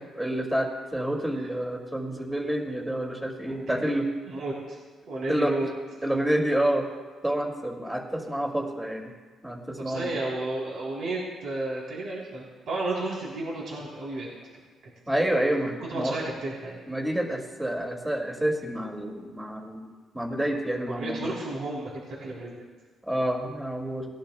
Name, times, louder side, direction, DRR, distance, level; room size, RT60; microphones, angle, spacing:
voice 1, 0.2-4.1 5.3-5.5 6.0-6.9 7.2-9.1 9.4-10.1 15.1-16.2 16.9-19.9 20.1-21.3 23.1-24.1, right 1 dB, 10° right, 1 dB, 2.3 m, -28 dB
voice 2, 3.4-3.9 4.3-4.8 5.1-5.7 9.8-14.3 15.9-16.8 20.8-22.5, right 2 dB, 65° right, -5 dB, 3.5 m, -33 dB
19.5 x 11.5 x 2.3 m, 1.4 s
cardioid pair, 90°, 0 cm